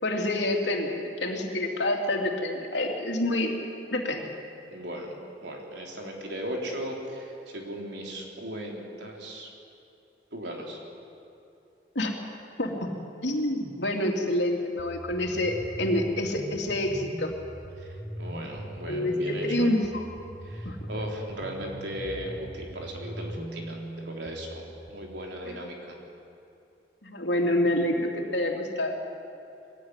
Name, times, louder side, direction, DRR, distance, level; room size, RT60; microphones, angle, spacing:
voice 1, 0.0-3.6 3.9-4.3 11.9-12.1 12.6-12.9 13.2-17.4 18.9-20.0 20.6-20.8 27.0-29.0, left 1 dB, 80° left, 2 dB, 3.0 m, -27 dB
voice 2, 4.7-5.2 5.4-9.5 10.3-10.8 17.8-19.7 20.4-26.0, equal, 75° right, 0 dB, 3.9 m, -37 dB
sound 1, 14.8-24.9, right 1 dB, 20° right, 1.7 m, -40 dB
22.0 x 16.5 x 9.8 m, 2.7 s
head